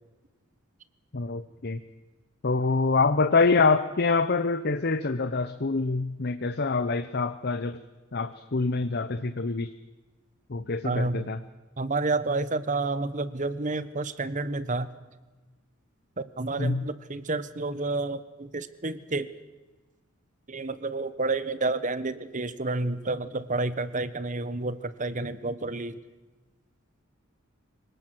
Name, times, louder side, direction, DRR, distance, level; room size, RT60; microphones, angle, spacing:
voice 1, 1.1-1.8 2.4-7.8 8.1-9.7 10.5-11.4 16.6-16.9, left 4 dB, 50° left, 11 dB, 0.8 m, -25 dB
voice 2, 10.8-11.2 11.8-14.9 16.4-19.3 20.5-26.0, right 3 dB, 35° right, 15 dB, 1.1 m, -30 dB
25.0 x 18.0 x 7.8 m, 1.2 s
head